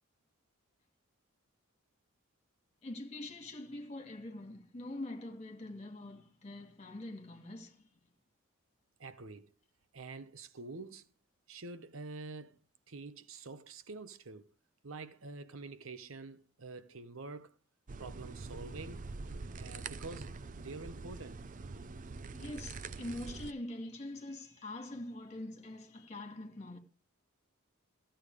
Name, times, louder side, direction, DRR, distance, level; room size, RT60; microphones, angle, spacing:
voice 1, 2.8-7.9 22.3-26.8, left 1 dB, 30° left, 2.7 m, -44 dB
voice 2, 9.0-9.5 9.9-11.1 11.5-12.6 12.9-14.5 14.8-17.5 18.0-19.1 19.6-21.4, right 3 dB, 65° right, 0.9 m, -47 dB
sound 1, 17.9-23.5, right 4 dB, 35° right, 0.5 m, -45 dB
14.5 x 8.9 x 5.0 m
head